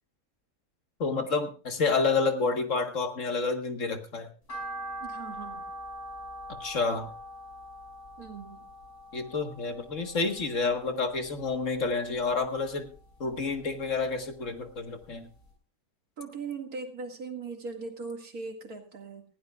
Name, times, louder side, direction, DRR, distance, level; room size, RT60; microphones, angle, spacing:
voice 1, 1.0-4.3 6.6-7.1 9.1-12.9 13.2-15.3, left 4 dB, 55° left, 5 dB, 1.8 m, -29 dB
sound 1, 4.5-10.8 11.2-12.3 12.7-14.1 14.5-14.6 15.0-15.1 15.4-15.5, right 1 dB, 80° left, 6.5 m, -42 dB
voice 2, 5.0-5.7 8.2-8.7 16.2-19.2, right 4 dB, 75° right, 4 dB, 2.5 m, -39 dB
20.0 x 15.5 x 2.4 m, 0.37 s
omnidirectional pair, 1.6 m